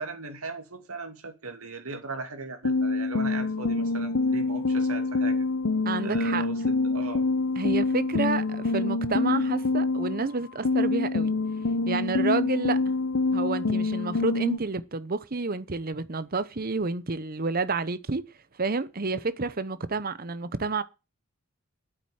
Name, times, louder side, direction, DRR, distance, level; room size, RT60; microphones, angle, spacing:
voice 1, 0.0-5.5 6.0-7.3, right 3 dB, 75° right, 2.7 m, -38 dB
sound 1, 2.7-10.3 10.6-14.6, left 3 dB, 65° left, 0.7 m, -26 dB
voice 2, 5.8-6.4 7.6-11.4 11.9-12.8 13.3-18.2 18.6-20.8, right 3 dB, 40° right, 0.9 m, -29 dB
8.8 x 8.1 x 8.7 m
head